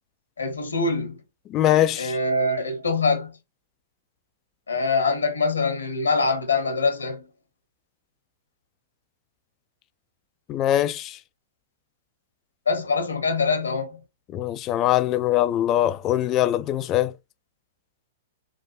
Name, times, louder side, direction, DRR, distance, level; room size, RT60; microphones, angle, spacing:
voice 1, 0.4-1.2 2.0-3.4 4.7-7.3 12.7-14.0, left 3 dB, 90° left, 1.0 m, -24 dB
voice 2, 1.5-2.2 10.5-11.2 14.3-17.1, left 12 dB, 35° left, 0.3 m, -22 dB
3.4 x 2.5 x 2.5 m
hypercardioid pair, 115°, 0 cm